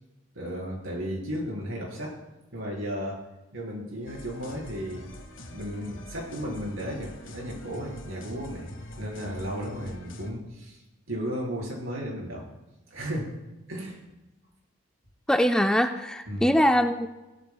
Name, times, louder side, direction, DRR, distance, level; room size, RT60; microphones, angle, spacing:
voice 1, 0.3-2.1 2.5-3.2 3.5-5.1 5.5-10.8 11.1-12.4 12.9-13.3 13.7-14.0 16.3-16.5, equal, 80° right, -3 dB, 4.5 m, -34 dB
sound 1, 4.1-10.3, left 1 dB, 65° left, 1.4 m, -44 dB
voice 2, 15.3-17.1, equal, 5° left, 5 dB, 0.4 m, -22 dB
17.0 x 12.5 x 2.3 m, 1.0 s
head